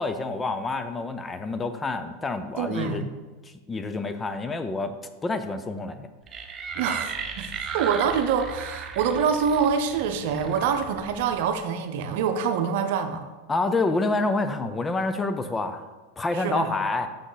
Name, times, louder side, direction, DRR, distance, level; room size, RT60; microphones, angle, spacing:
voice 1, 0.0-3.0 3.7-5.0 5.2-6.1 13.5-15.9 16.2-17.1, left 3 dB, 15° left, 9 dB, 0.5 m, -27 dB
voice 2, 2.6-3.1 6.8-13.2 16.3-16.7, right 6 dB, 65° right, 8 dB, 0.7 m, -25 dB
sound 1, 6.3-11.5, right 5 dB, 30° right, 0.7 m, -36 dB
6.6 x 6.1 x 3.9 m, 1.2 s
hypercardioid pair, 115°, 0 cm